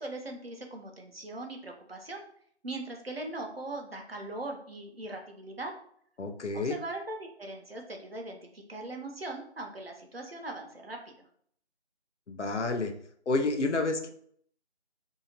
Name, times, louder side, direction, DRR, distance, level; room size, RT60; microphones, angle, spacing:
voice 1, 0.0-2.2 2.6-5.7 6.5-11.1, right 2 dB, 60° right, 2 dB, 0.8 m, -40 dB
voice 2, 6.2-6.7 12.3-12.9 13.3-14.1, left 3 dB, 80° left, 5 dB, 0.7 m, -29 dB
2.8 x 2.7 x 2.9 m, 0.62 s
figure-of-eight pair, 175°, 34 cm